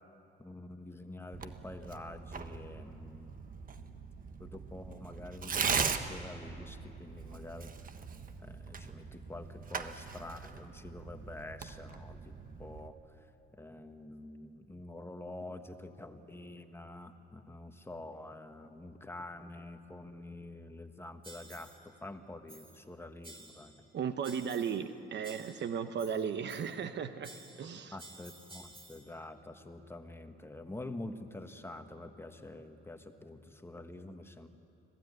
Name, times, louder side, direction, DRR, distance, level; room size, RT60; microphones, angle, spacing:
voice 1, 0.4-3.3 4.4-7.7 8.4-13.3 13.5-23.7 27.9-34.5, left 2 dB, 10° left, 7 dB, 1.5 m, -47 dB
Tearing, 1.3-12.9, right 5 dB, 45° right, 1.3 m, -40 dB
sound 1, 21.2-21.9 22.5-22.9 23.2-23.9 24.2-24.9 25.2-26.9 27.2-29.1, right 2 dB, 25° right, 2.6 m, -54 dB
voice 2, 23.9-27.3 27.6-27.9, right 7 dB, 60° right, 10 dB, 1.1 m, -35 dB
25.0 x 17.5 x 9.5 m, 2.9 s
cardioid pair, 90°, 20 cm